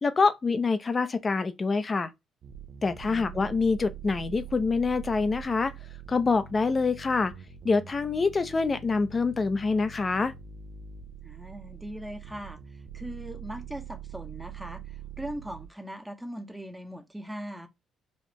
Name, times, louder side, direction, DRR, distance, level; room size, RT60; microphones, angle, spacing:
voice 1, 0.0-2.1 2.8-5.7 6.1-7.3 7.6-10.3, left 4 dB, 35° left, 0.6 m, -26 dB
sound 1, 2.4-15.7, right 8 dB, 60° right, 0.7 m, -44 dB
voice 2, 3.0-3.5 11.2-17.7, equal, 10° right, 0.8 m, -40 dB
4.1 x 2.5 x 3.1 m
hypercardioid pair, 55°, 0 cm